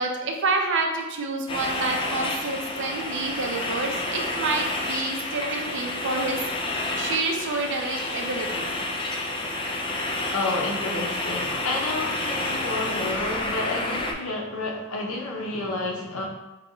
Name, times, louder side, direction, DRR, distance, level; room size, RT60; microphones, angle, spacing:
voice 1, 0.0-6.4 7.0-8.7, right 3 dB, 60° right, 2 dB, 0.6 m, -28 dB
sound 1, 1.5-14.1, left 2 dB, 25° left, 0.4 m, -29 dB
voice 2, 10.3-16.3, left 2 dB, 75° left, -1 dB, 0.9 m, -30 dB
5.9 x 2.4 x 3.1 m, 1.0 s
head